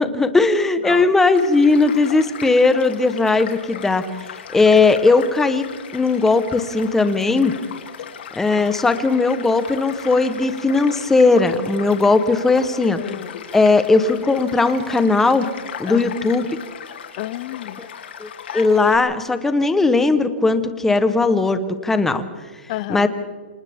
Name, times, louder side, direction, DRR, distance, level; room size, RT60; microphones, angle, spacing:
voice 1, 0.0-4.0 4.5-5.6 5.9-7.5 8.4-13.0 13.5-15.5 15.8-16.4 18.2-18.3 18.5-22.2 22.9-23.1, left 3 dB, 5° left, 10 dB, 1.1 m, -17 dB
Child speech kid speaking / Stream / Car passing by, 1.3-19.0, left 8 dB, 70° left, 3.0 m, -37 dB
voice 2, 12.9-13.5 15.8-16.1 17.2-17.8 22.7-23.1, left 16 dB, 35° left, 17 dB, 0.8 m, -31 dB
29.0 x 26.0 x 3.7 m, 1.5 s
hypercardioid pair, 160°, 6 cm